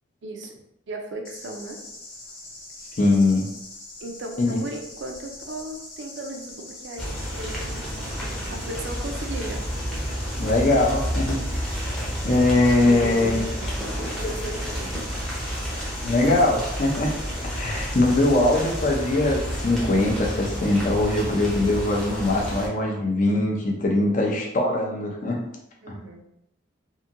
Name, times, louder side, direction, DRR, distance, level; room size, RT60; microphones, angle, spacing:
voice 1, 0.2-0.5 0.9-1.8 4.0-9.8 12.3-15.0 25.8-26.2, right 2 dB, 65° right, 2 dB, 0.5 m, -37 dB
sound 1, 1.2-18.9, left 2 dB, 85° left, 0.9 m, -43 dB
voice 2, 3.0-3.5 4.4-4.6 10.4-11.4 12.2-13.4 14.2-14.6 16.0-17.1 17.4-25.4 25.9-26.0, left 2 dB, 40° left, 0 dB, 0.5 m, -22 dB
sound 2, 7.0-22.7, equal, 5° left, 0.7 m, -30 dB
2.8 x 2.6 x 2.5 m, 0.81 s
head